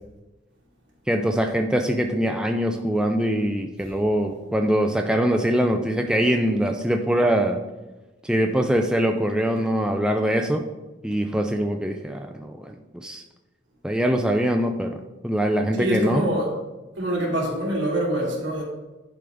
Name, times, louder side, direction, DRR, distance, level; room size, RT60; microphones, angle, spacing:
voice 1, 1.1-7.6 8.2-10.7 11.0-13.2 13.8-15.0 15.2-16.2, equal, 5° right, 0.4 m, -23 dB
voice 2, 15.8-16.5 17.0-18.6, right 1 dB, 70° right, 2.7 m, -25 dB
10.5 x 5.0 x 3.5 m
head